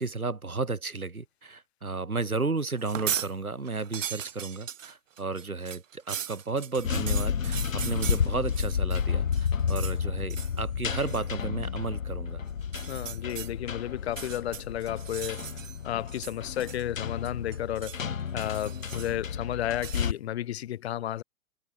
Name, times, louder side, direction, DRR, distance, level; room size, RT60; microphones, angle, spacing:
voice 1, 0.0-12.4, right 3 dB, 80° right, 3.1 m, -33 dB
sound 1, 2.8-3.3 3.7-9.0 9.3-10.0 10.3-10.6 11.0-11.3 12.6-13.5 14.0-15.8 16.1-17.0 17.2-18.0 18.4-19.3 19.8-20.1, right 9 dB, 60° right, 0.8 m, -38 dB
sound 2, 6.8-20.1, left 7 dB, 65° left, 3.0 m, -31 dB
voice 2, 12.9-15.5 15.8-18.0 18.3-21.2, left 12 dB, 45° left, 2.6 m, -33 dB
figure-of-eight pair, 115°, 43 cm